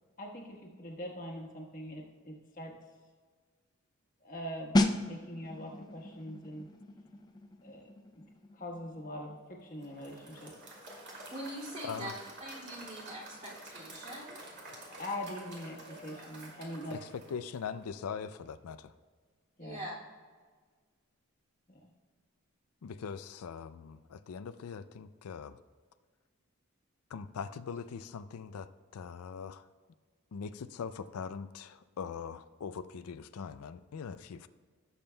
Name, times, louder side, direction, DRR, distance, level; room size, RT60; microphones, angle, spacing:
voice 1, 0.2-2.7 4.2-4.7 5.0-6.7 7.6-7.9 8.5-9.3 9.6-10.5 15.0-17.0 19.6-19.8 21.7-21.9, left 1 dB, 35° left, 0 dB, 1.3 m, -42 dB
sound 1, 4.7-15.2 15.5-15.8, left 1 dB, 20° left, 0.4 m, -37 dB
Applause / Crowd, 9.8-18.0, right 1 dB, 50° right, 2.4 m, -49 dB
voice 2, 11.3-12.1 12.4-14.4 19.6-19.9, right 1 dB, 30° right, -5 dB, 2.5 m, -43 dB
voice 3, 16.9-18.9 22.8-25.6 27.1-29.6 30.3-34.5, left 6 dB, 85° left, 12 dB, 0.4 m, -41 dB
17.0 x 7.1 x 2.3 m, 1.5 s
head